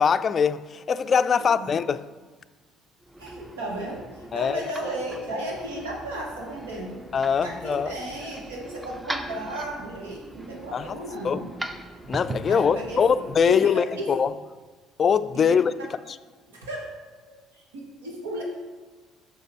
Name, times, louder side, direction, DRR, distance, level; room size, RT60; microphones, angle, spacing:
voice 1, 0.0-2.1 4.3-4.7 7.1-7.9 10.7-11.0 11.2-11.4 12.1-14.3 15.0-15.7, left 6 dB, 40° left, 0.3 m, -22 dB
sound 1, 3.0-13.6, right 1 dB, 15° right, 0.7 m, -40 dB
voice 2, 3.2-7.0 7.4-11.5 12.5-13.0 13.4-14.1 15.3-15.9 16.5-16.9 17.5-18.4, right 1 dB, 80° right, 1.2 m, -34 dB
6.6 x 6.5 x 4.3 m
hypercardioid pair, 55°, 0 cm